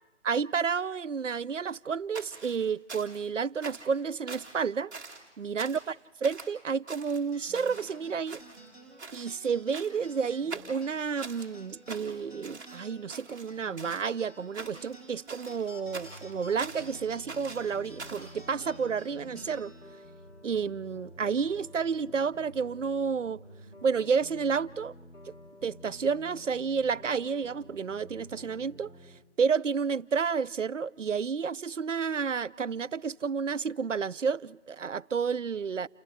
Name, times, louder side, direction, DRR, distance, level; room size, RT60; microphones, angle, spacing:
voice 1, 0.2-4.9 5.4-6.0 6.2-8.4 9.1-19.7 20.4-23.4 23.8-24.9 25.3-25.4 25.6-28.9 29.4-35.9, right 6 dB, 90° right, 0.6 m, -30 dB
sound 1, 2.1-3.3 3.6-4.0 4.3-4.6 4.9-5.3 5.6-5.9 6.2-6.5 6.9-8.0 8.3-8.7 9.0-9.3 9.7-10.1 10.5-11.5 11.9-12.8 13.1-14.1 14.5-15.0 15.3-16.9 17.3-18.3, right 3 dB, 15° right, 1.6 m, -44 dB
sound 2, 7.3-22.1, right 1 dB, 15° left, 5.3 m, -53 dB
sound 3, 15.8-29.2, equal, 75° left, 2.8 m, -51 dB
29.5 x 29.0 x 3.3 m
figure-of-eight pair, 160°, 36 cm